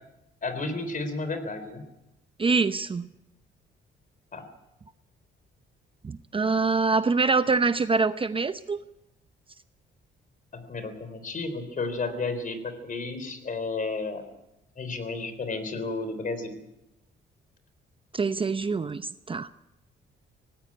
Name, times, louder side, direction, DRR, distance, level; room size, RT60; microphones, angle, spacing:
voice 1, 0.4-1.9 4.3-4.4 10.5-14.3 14.8-16.5, left 3 dB, 40° left, 10 dB, 3.8 m, -32 dB
voice 2, 2.4-3.1 6.0-8.8 18.1-19.5, right 4 dB, 25° right, 12 dB, 0.7 m, -25 dB
18.5 x 16.5 x 8.7 m, 0.90 s
cardioid pair, 90°, 20 cm